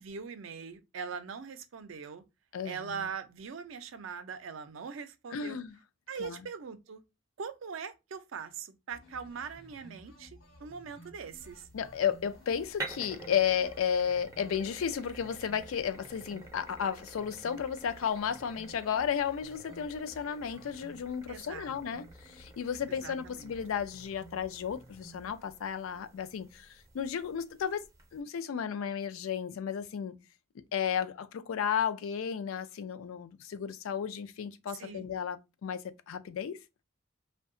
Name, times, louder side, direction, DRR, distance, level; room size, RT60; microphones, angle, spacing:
voice 1, 0.0-2.2 2.6-5.6 6.1-7.0 7.4-11.7 21.3-22.1 22.9-23.5 34.8-35.1, right 6 dB, 70° right, 0.4 m, -42 dB
voice 2, 2.5-3.1 5.3-5.7 6.2-6.5 11.7-26.7 26.9-27.8 28.1-30.1 30.7-36.6, left 8 dB, 85° left, 0.4 m, -33 dB
sound 1, 8.9-25.3, equal, 70° left, 1.1 m, -55 dB
sound 2, 11.3-28.2, right 3 dB, 15° right, 0.4 m, -50 dB
2.7 x 2.2 x 2.5 m
head